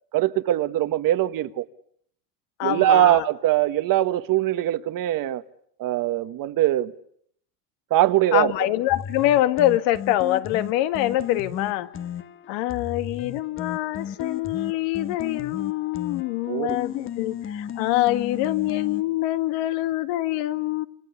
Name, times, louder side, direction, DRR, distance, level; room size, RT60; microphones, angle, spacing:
voice 1, 0.1-1.6 2.6-5.4 5.8-6.9 7.9-8.5 16.5-16.8, right 14 dB, 45° right, 1.4 m, -22 dB
voice 2, 2.6-3.3 8.3-11.9 12.5-20.9, left 14 dB, 65° left, 1.8 m, -24 dB
sound 1, 8.9-19.0, left 9 dB, 25° left, 1.1 m, -35 dB
28.0 x 25.5 x 8.2 m
supercardioid pair, 130°, 48 cm